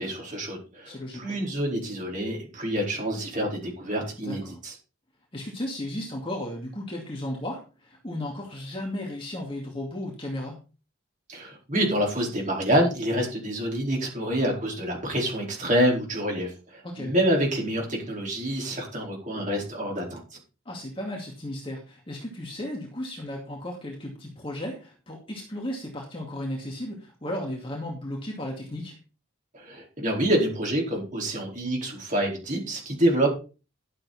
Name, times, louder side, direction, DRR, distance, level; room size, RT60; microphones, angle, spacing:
voice 1, 0.0-4.7 11.3-20.2 29.5-33.3, equal, 35° right, -1 dB, 4.6 m, -27 dB
voice 2, 0.9-1.4 4.2-4.6 5.3-10.6 16.8-17.1 20.7-28.9, left 1 dB, 25° left, -1 dB, 2.4 m, -35 dB
12.0 x 7.5 x 4.3 m, 0.33 s
head